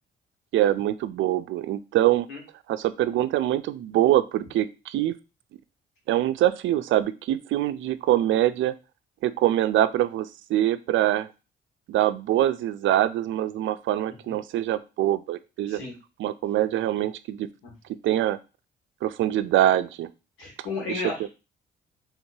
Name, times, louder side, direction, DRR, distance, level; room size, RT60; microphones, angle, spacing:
voice 1, 0.5-2.3 2.7-5.2 6.1-8.7 9.2-11.3 11.9-15.8 16.2-17.5 18.0-18.4 19.0-20.1 20.9-21.3, right 13 dB, 75° right, 13 dB, 0.4 m, -24 dB
voice 2, 20.4-21.3, left 3 dB, 85° left, -1 dB, 2.0 m, -33 dB
4.5 x 3.6 x 2.7 m, 0.29 s
cardioid pair, 90°, 20 cm